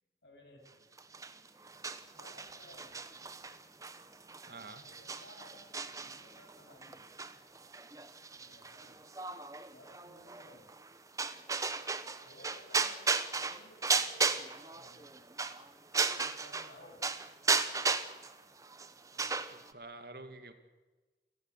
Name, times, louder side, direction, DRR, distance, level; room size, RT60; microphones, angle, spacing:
voice 1, 0.2-0.8 2.2-3.0 4.8-7.0 8.3-9.0 9.7-10.7 12.2-15.2 16.1-17.1 19.1-19.3, left 1 dB, 80° left, 2 dB, 7.4 m, -58 dB
sound 1, 1.0-16.7 17.0-19.7, right 4 dB, 20° right, 1.0 m, -35 dB
voice 2, 4.5-4.8 19.5-20.5, right 2 dB, 60° right, 8 dB, 2.4 m, -48 dB
29.5 x 15.5 x 8.4 m, 1.3 s
head